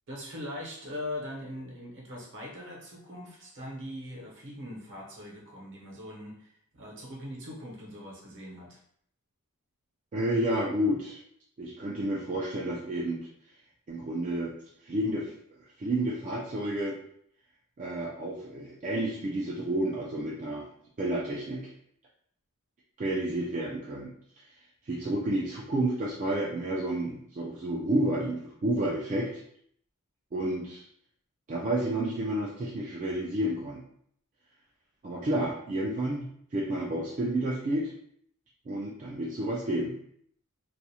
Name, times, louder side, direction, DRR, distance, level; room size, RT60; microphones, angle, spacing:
voice 1, 0.1-8.8, left 1 dB, 55° right, -3 dB, 0.8 m, -41 dB
voice 2, 10.1-11.2 11.6-13.2 13.9-14.5 14.8-15.3 15.8-17.0 17.8-20.7 21.0-21.7 23.0-24.1 24.9-29.4 30.3-30.8 31.5-33.8 35.0-37.9 38.7-40.0, right 1 dB, 35° right, -5 dB, 0.3 m, -30 dB
2.4 x 2.0 x 2.7 m, 0.66 s
head